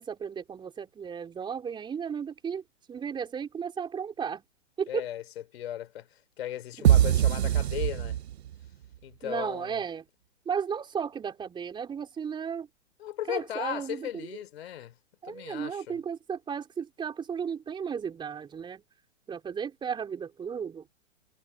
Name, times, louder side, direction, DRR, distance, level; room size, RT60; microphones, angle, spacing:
voice 1, 0.0-2.6 2.9-4.4 4.8-5.1 6.8-6.9 9.2-10.0 10.5-12.7 13.3-14.3 15.2-18.8 19.3-20.9, right 7 dB, 10° right, 4.2 m, -34 dB
voice 2, 4.9-5.2 5.5-8.2 9.0-9.8 13.0-15.0 15.2-16.0, left 12 dB, 50° left, 3.6 m, -37 dB
sound 1, 6.8-8.7, right 11 dB, 55° right, 0.6 m, -22 dB
figure-of-eight pair, 130°, 39 cm